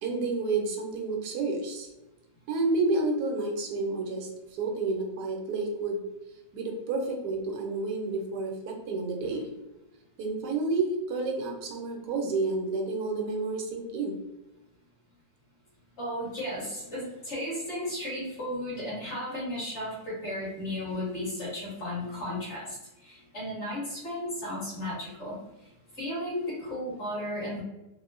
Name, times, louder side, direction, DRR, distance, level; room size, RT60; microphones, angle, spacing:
voice 1, 0.0-1.9 2.5-6.0 6.5-9.5 10.2-14.2, right 3 dB, 80° right, 2 dB, 1.2 m, -30 dB
voice 2, 16.0-22.8 23.0-25.4 26.0-27.6, left 1 dB, 45° left, -8 dB, 1.7 m, -34 dB
3.6 x 2.1 x 2.4 m, 0.99 s
omnidirectional pair, 1.7 m